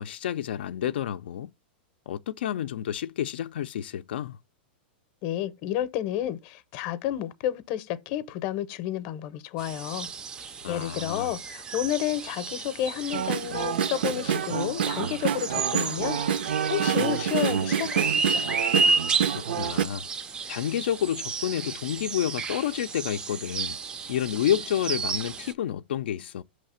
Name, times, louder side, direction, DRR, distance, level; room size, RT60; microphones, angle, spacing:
voice 1, 0.0-1.5 2.1-4.4 10.6-11.3 19.3-20.1 20.5-23.8 24.1-26.4, left 10 dB, 80° left, 0.4 m, -29 dB
voice 2, 5.2-10.1 10.7-16.2 16.6-18.6, left 12 dB, 40° left, 0.6 m, -31 dB
sound 1, 9.6-25.5, right 4 dB, 15° right, 0.3 m, -32 dB
sound 2, 13.1-19.8, right 8 dB, 75° right, 0.6 m, -27 dB
5.7 x 3.2 x 5.5 m
supercardioid pair, 160°, 6 cm